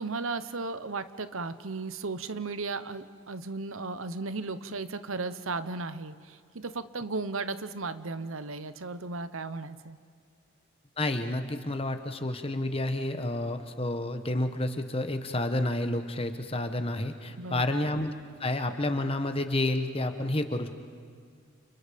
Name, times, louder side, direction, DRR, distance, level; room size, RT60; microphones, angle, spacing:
voice 1, 0.0-10.0 17.4-17.8, right 3 dB, 85° right, 13 dB, 1.0 m, -35 dB
voice 2, 11.0-18.1 18.4-20.7, left 1 dB, 30° left, 8 dB, 1.4 m, -30 dB
30.0 x 30.0 x 5.3 m, 2.1 s
head